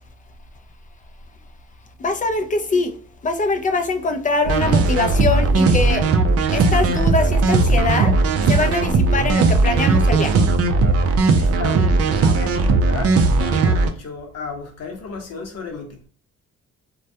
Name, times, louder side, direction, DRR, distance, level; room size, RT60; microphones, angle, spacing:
voice 1, 2.0-2.9 3.2-6.1 6.5-8.1 8.5-10.3, left 3 dB, 25° left, 0.4 m, -22 dB
sound 1, 4.4-13.9, right 3 dB, 50° right, 0.4 m, -17 dB
voice 2, 11.3-16.1, left 5 dB, 55° left, 0.9 m, -34 dB
2.2 x 2.2 x 2.7 m
cardioid pair, 90°, 30 cm